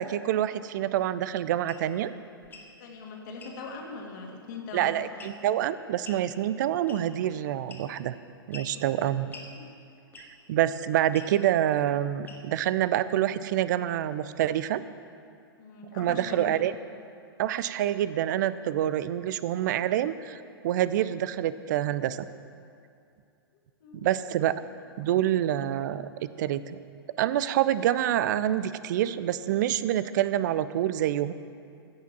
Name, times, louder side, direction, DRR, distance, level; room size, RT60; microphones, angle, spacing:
voice 1, 0.0-2.1 4.7-8.2 8.5-9.3 10.2-14.8 15.9-16.7 17.4-22.3 23.9-24.6 25.0-26.8 27.2-31.3, right 12 dB, 50° right, 15 dB, 0.5 m, -27 dB
sound 1, 1.7-1.8 2.4-2.7 3.4-3.6 5.2-5.5 6.0-6.3 6.9-7.2 7.7-8.1 8.5-8.7 9.3-9.5 10.1-10.4 11.1-11.3 12.2-12.6, left 3 dB, 15° left, 1.4 m, -46 dB
voice 2, 2.8-5.4 8.7-9.1 9.5-9.7 15.6-16.5 23.8-24.0, left 4 dB, 50° left, 0 dB, 2.1 m, -41 dB
15.0 x 5.8 x 7.4 m, 2.5 s
figure-of-eight pair, 105°, 13 cm